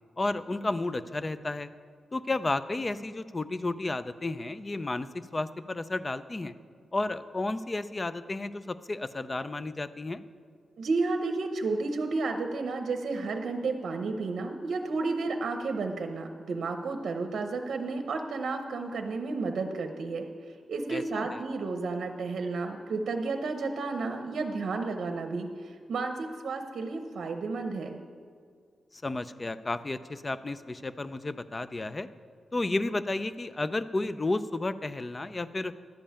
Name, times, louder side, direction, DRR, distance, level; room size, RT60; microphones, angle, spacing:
voice 1, 0.2-1.7 2.1-6.5 6.9-10.2 20.9-21.4 28.9-32.1 32.5-35.7, left 2 dB, 25° left, 13 dB, 0.4 m, -32 dB
voice 2, 10.8-28.0, right 3 dB, 65° right, 4 dB, 0.8 m, -32 dB
11.5 x 5.4 x 8.6 m, 2.1 s
wide cardioid pair, 125°, 0 cm